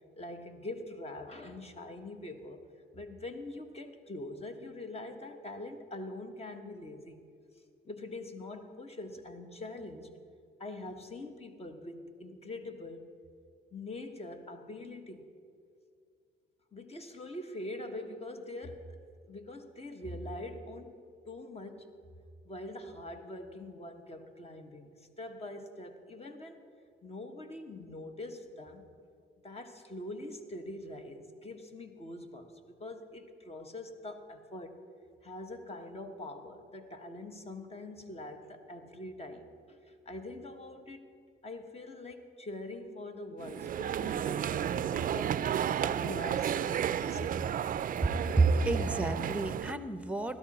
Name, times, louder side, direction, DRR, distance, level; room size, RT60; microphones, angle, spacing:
voice 1, 0.2-2.6 2.9-7.2 7.8-10.1 10.6-13.1 13.7-15.2 16.7-19.0 19.2-20.9 21.3-21.9 22.4-26.6 27.0-28.8 29.4-34.8 35.2-41.0 41.4-45.4 45.8-47.4, left 1 dB, 30° left, 6 dB, 1.3 m, -43 dB
sound 1, 43.4-49.7, right 9 dB, 45° right, 0.4 m, -32 dB
voice 2, 48.4-50.4, right 3 dB, 5° right, 10 dB, 0.8 m, -28 dB
16.0 x 13.0 x 4.2 m, 2.3 s
cardioid pair, 90°, 20 cm